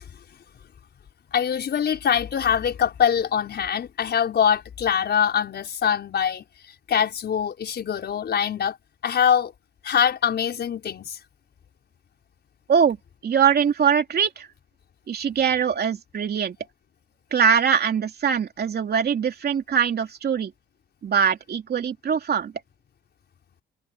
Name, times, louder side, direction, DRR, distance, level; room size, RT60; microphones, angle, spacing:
voice 1, 1.3-6.4 6.9-8.8 9.0-9.5 9.8-11.2, left 8 dB, 55° left, 5.8 m, -23 dB
voice 2, 13.2-14.5 15.1-16.6 17.3-20.5 21.0-22.5, right 7 dB, 55° right, 3.1 m, -22 dB
cardioid pair, 90°, 20 cm